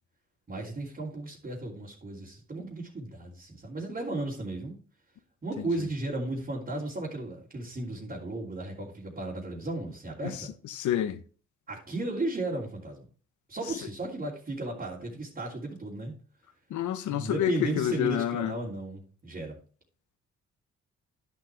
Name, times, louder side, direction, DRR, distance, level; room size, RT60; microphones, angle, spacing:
voice 1, 0.5-4.8 5.4-10.5 11.7-13.1 13.5-16.2 17.1-19.6, right 2 dB, 30° right, 3.0 m, -35 dB
voice 2, 10.8-11.2 16.7-18.5, left 11 dB, 75° left, 1.0 m, -28 dB
11.0 x 7.6 x 3.4 m
cardioid pair, 90°, 30 cm